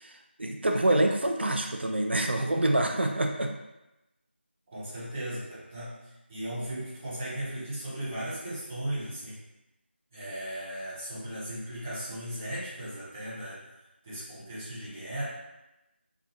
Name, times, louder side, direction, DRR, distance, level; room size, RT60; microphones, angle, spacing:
voice 1, 0.0-3.5, right 1 dB, 65° right, 3 dB, 0.4 m, -26 dB
voice 2, 4.7-9.4 10.1-13.6 14.0-15.2, right 1 dB, 10° right, -12 dB, 0.6 m, -37 dB
2.8 x 2.4 x 2.6 m, 0.95 s
figure-of-eight pair, 170°, 6 cm